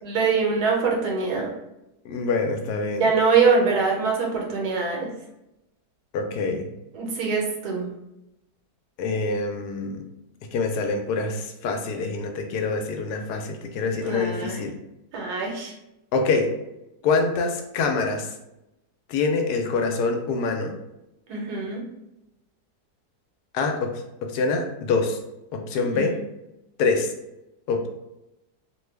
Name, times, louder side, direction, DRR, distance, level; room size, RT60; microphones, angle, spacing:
voice 1, 0.0-1.5 3.0-5.1 6.9-7.9 14.0-14.6 15.1-15.7 21.3-21.8 25.8-26.2, right 4 dB, 85° right, -1 dB, 1.3 m, -23 dB
voice 2, 2.0-3.0 6.1-6.7 9.0-10.0 10.5-14.8 16.1-16.5 17.0-18.3 19.1-20.7 23.5-23.9 24.3-25.2 25.5-26.2 26.8-27.1 27.7-27.9, left 4 dB, 90° left, 4 dB, 1.1 m, -25 dB
2.9 x 2.2 x 3.2 m, 0.90 s
omnidirectional pair, 1.6 m